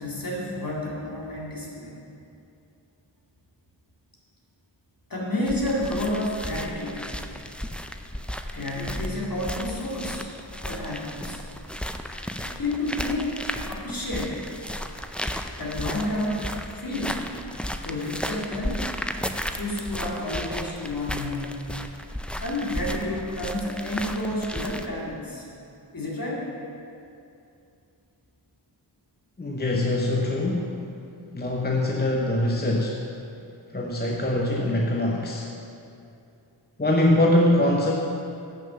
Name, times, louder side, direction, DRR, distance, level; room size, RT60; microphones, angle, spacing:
voice 1, 0.0-1.9 5.1-7.1 8.5-10.3 10.7-11.4 12.4-13.3 13.7-14.4 15.6-17.3 17.8-18.8 19.5-21.5 22.4-25.5 25.9-26.5, left 1 dB, 45° left, -5 dB, 2.2 m, -30 dB
sound 1, 5.5-24.9, equal, 5° left, 0.4 m, -34 dB
voice 2, 29.4-30.8 31.3-33.0 33.7-35.5 36.8-37.9, left 1 dB, 20° left, -1 dB, 0.8 m, -23 dB
7.7 x 6.2 x 6.7 m, 2.6 s
wide cardioid pair, 50°, 46 cm